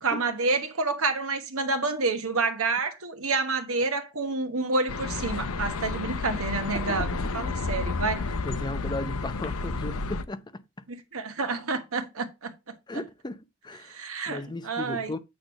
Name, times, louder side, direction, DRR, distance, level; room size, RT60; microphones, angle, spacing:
voice 1, 0.0-8.3 10.9-12.7 13.8-15.1, right 3 dB, 65° right, 1.2 m, -29 dB
sound 1, 4.9-10.2, left 3 dB, 65° left, 0.7 m, -31 dB
voice 2, 6.7-7.1 8.4-10.6 12.9-14.0 14.3-15.2, left 2 dB, 20° left, 0.6 m, -35 dB
8.7 x 3.2 x 6.2 m
head